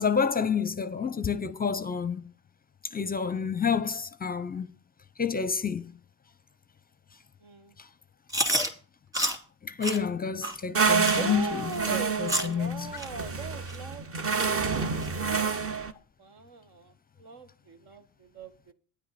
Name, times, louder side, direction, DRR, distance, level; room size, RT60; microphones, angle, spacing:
voice 1, 0.0-2.3 2.9-4.7 5.2-5.9 7.8-7.9 9.6-11.6 12.2-12.9, left 6 dB, 20° left, 0.6 m, -29 dB
voice 2, 7.4-7.7 11.1-14.4 16.2-18.7, right 4 dB, 70° right, 1.8 m, -39 dB
Chewing mastication, 8.3-8.7 9.1-9.4 9.8-10.0 10.4-10.6 11.0-11.2 11.7-11.8 12.3-12.5 13.0-13.1 13.7-13.8 14.3-14.4 15.0-15.1, equal, 10° right, 2.8 m, -28 dB
sound 1, 10.7-15.9, right 5 dB, 35° right, 1.1 m, -28 dB
11.5 x 10.0 x 4.2 m
cardioid pair, 95°, 40 cm